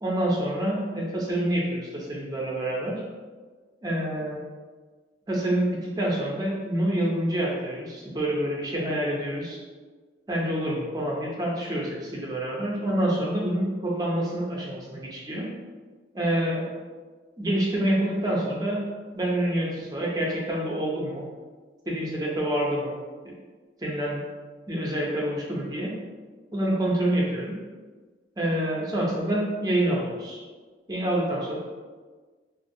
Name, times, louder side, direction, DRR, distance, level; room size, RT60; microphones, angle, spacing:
voice 1, 0.0-2.9 3.8-4.4 5.3-9.6 10.3-15.5 16.1-16.7 17.4-18.8 19.1-21.2 21.9-23.0 23.2-23.3 23.8-24.2 24.7-25.9 26.5-27.6 28.4-30.4 30.9-31.6, right 1 dB, 20° right, -3 dB, 0.4 m, -27 dB
2.4 x 2.2 x 2.6 m, 1.4 s
head